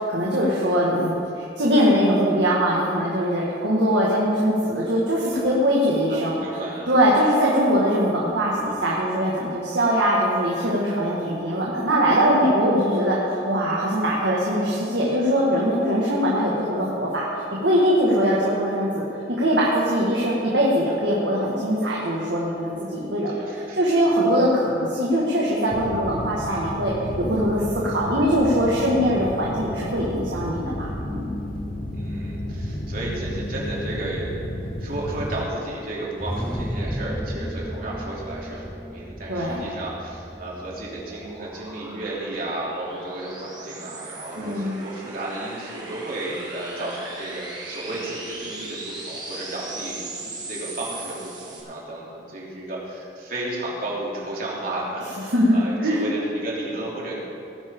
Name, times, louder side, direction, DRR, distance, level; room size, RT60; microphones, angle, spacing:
voice 1, 0.0-6.4 6.9-17.3 17.6-19.0 19.4-31.3 39.3-39.6 44.4-44.8 55.3-56.0, equal, 80° right, -5 dB, 1.9 m, -22 dB
voice 2, 6.1-7.0 23.3-23.9 31.9-34.3 34.8-50.0 50.4-57.2, right 2 dB, 55° right, -5 dB, 3.2 m, -33 dB
sound 1, 25.7-35.4, left 1 dB, 55° left, 1.2 m, -32 dB
sound 2, 36.2-41.7, equal, 5° left, 0.5 m, -33 dB
sound 3, 40.3-51.6, right 2 dB, 25° right, 2.1 m, -39 dB
18.5 x 10.0 x 3.8 m, 2.8 s
head